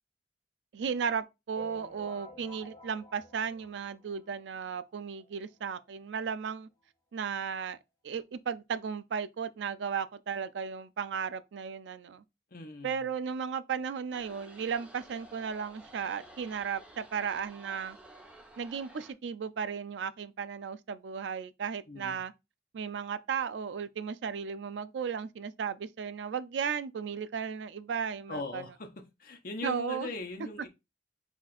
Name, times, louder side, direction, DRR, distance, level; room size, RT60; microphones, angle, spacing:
voice 1, 0.7-6.7 7.1-7.8 8.0-12.2 12.8-18.0 18.6-22.3 22.7-28.6 29.6-30.1, right 6 dB, 90° right, 0.4 m, -35 dB
sound 1, 1.6-4.4 4.9-5.0 5.2-5.3 5.6-5.7 6.6-6.7 7.1-7.2, left 2 dB, 20° left, 1.2 m, -51 dB
voice 2, 12.5-13.1 21.9-22.2 28.3-30.7, left 2 dB, 55° left, 0.9 m, -40 dB
sound 2, 14.1-19.1, right 1 dB, 5° right, 0.7 m, -53 dB
4.7 x 2.4 x 4.1 m
head